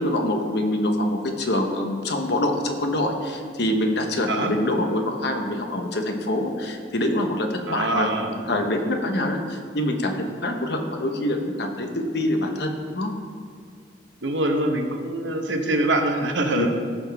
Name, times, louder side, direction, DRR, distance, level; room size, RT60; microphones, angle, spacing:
voice 1, 0.0-8.1 8.5-13.1 16.5-16.7, left 1 dB, 60° left, 4 dB, 1.0 m, -25 dB
voice 2, 7.7-8.3 14.2-16.7, right 1 dB, 75° right, 4 dB, 1.0 m, -24 dB
15.5 x 5.8 x 3.5 m, 2.1 s
head